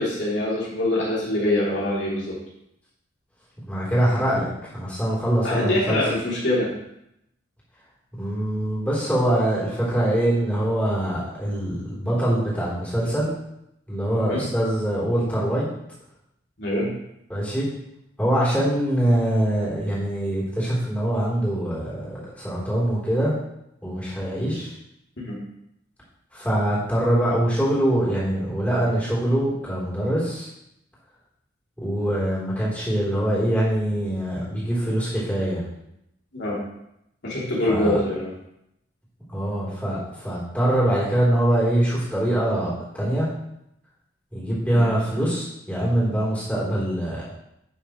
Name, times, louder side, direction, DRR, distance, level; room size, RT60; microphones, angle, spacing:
voice 1, 0.0-2.3 5.4-6.7 14.3-14.4 16.6-16.9 25.2-25.3 36.3-36.6 37.2-38.3 44.7-44.8, left 1 dB, 60° left, -6 dB, 2.9 m, -24 dB
voice 2, 3.7-6.0 8.2-13.3 13.9-15.7 17.3-17.7 18.2-23.3 23.8-24.7 26.3-30.5 31.8-35.6 37.7-38.0 39.3-43.3 44.3-47.2, right 1 dB, 10° left, -8 dB, 3.4 m, -23 dB
11.5 x 6.7 x 3.1 m, 0.81 s
head